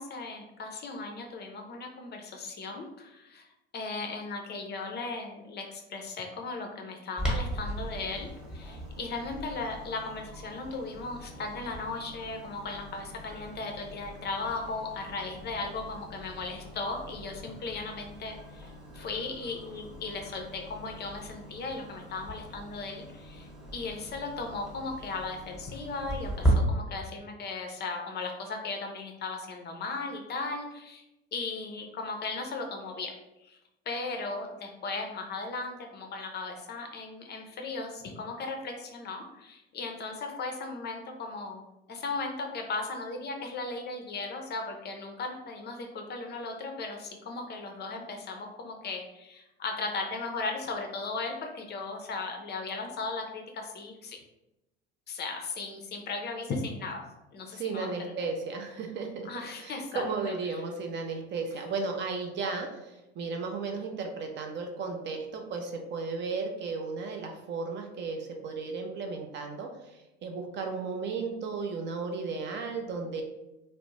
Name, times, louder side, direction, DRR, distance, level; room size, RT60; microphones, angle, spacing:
voice 1, 0.0-3.5 3.7-31.0 31.3-33.1 33.4-33.6 33.9-54.2 55.1-58.1 59.2-60.1 60.5-60.6, left 3 dB, 35° left, 3 dB, 0.5 m, -37 dB
Clock, 7.2-26.5, right 1 dB, ahead, 0.9 m, -38 dB
voice 2, 57.5-59.3 59.6-69.7 70.2-73.2, right 4 dB, 35° right, 3 dB, 0.4 m, -34 dB
2.4 x 2.0 x 3.0 m, 0.93 s
hypercardioid pair, 80°, 32 cm